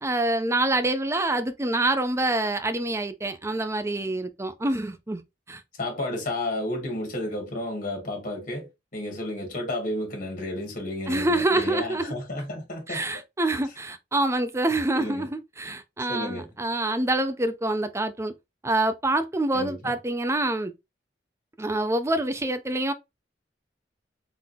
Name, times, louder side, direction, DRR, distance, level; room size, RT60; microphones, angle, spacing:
voice 1, 0.0-5.2 5.5-5.6 11.1-12.1 12.9-18.3 18.6-20.7 21.6-22.9, right 2 dB, 15° right, 0.6 m, -26 dB
voice 2, 5.8-13.0 14.9-15.3 16.1-16.5 19.5-19.9, left 1 dB, 50° left, 2.1 m, -32 dB
4.0 x 3.7 x 2.7 m
head